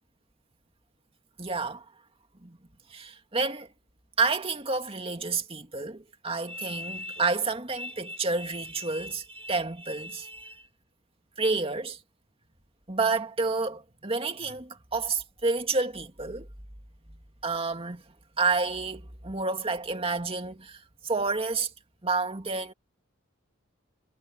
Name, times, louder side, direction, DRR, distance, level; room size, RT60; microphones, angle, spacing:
voice 1, 1.4-1.8 2.4-2.6 2.9-3.7 4.2-10.6 11.4-12.0 12.9-16.5 17.4-18.0 18.4-21.7 22.0-22.7, right 3 dB, 30° right, 2.3 m, -29 dB
head